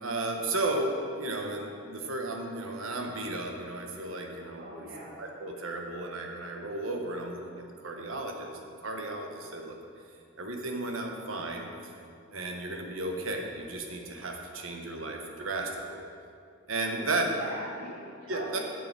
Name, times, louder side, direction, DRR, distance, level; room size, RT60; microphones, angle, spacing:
voice 1, 0.0-4.7 5.2-9.8 10.4-11.7 12.3-16.0 16.7-17.3 18.3-18.6, right 2 dB, 85° right, 2 dB, 1.1 m, -34 dB
voice 2, 4.6-5.1 16.9-17.0 17.4-18.6, right 1 dB, 70° right, -11 dB, 2.6 m, -42 dB
9.3 x 6.8 x 5.3 m, 2.4 s
head